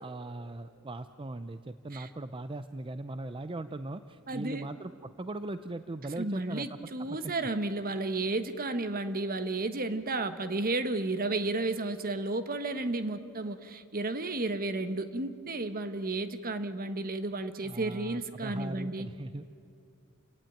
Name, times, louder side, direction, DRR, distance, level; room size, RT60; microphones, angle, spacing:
voice 1, 0.0-7.5 17.6-19.5, right 2 dB, 25° right, 11 dB, 0.5 m, -40 dB
voice 2, 4.3-4.7 6.2-19.1, right 2 dB, 40° right, 10 dB, 1.2 m, -32 dB
28.5 x 18.0 x 9.2 m, 2.4 s
head